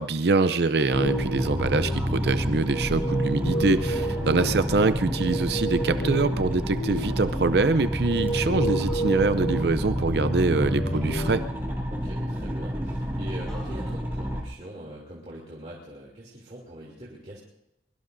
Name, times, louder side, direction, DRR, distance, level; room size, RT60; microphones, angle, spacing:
voice 1, 0.0-11.4, right 3 dB, 65° right, 12 dB, 0.6 m, -24 dB
sound 1, 0.8-1.4 1.8-2.9 3.9-4.8 6.0-6.5 7.0-7.5 8.8-9.6 10.9-11.9 13.5-14.2, right 1 dB, 5° left, 6.4 m, -52 dB
sound 2, 0.9-11.4, equal, 60° left, 3.3 m, -30 dB
sound 3, 0.9-14.4, equal, 15° right, 2.6 m, -30 dB
voice 2, 11.9-17.4, right 1 dB, 35° right, -5 dB, 3.0 m, -42 dB
23.5 x 22.5 x 2.7 m, 0.85 s
head